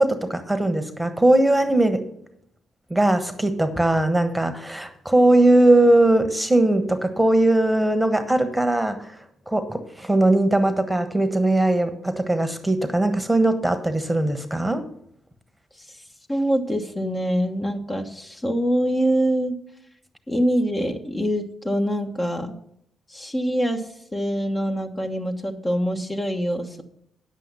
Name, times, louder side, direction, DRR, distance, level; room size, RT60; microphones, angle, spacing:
voice 1, 0.0-2.0 2.9-9.2 9.5-14.8, right 1 dB, 10° right, 10 dB, 1.3 m, -20 dB
voice 2, 16.3-19.5 20.3-22.6 23.1-26.8, equal, 20° left, 4 dB, 1.2 m, -24 dB
9.9 x 7.7 x 5.5 m, 0.70 s
hypercardioid pair, 45°, 0 cm